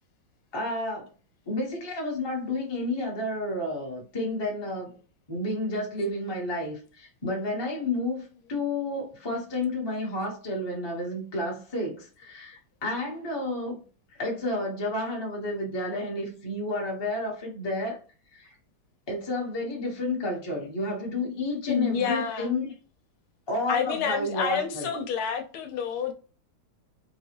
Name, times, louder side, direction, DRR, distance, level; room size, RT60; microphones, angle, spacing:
voice 1, 0.5-1.1 1.5-4.9 5.3-13.8 14.1-18.0 18.3-18.5 19.1-22.7 23.5-24.9, left 2 dB, 20° left, 0.8 m, -31 dB
voice 2, 21.7-22.5 23.7-26.1, left 6 dB, 80° left, 1.4 m, -29 dB
4.1 x 2.3 x 2.9 m
omnidirectional pair, 2.3 m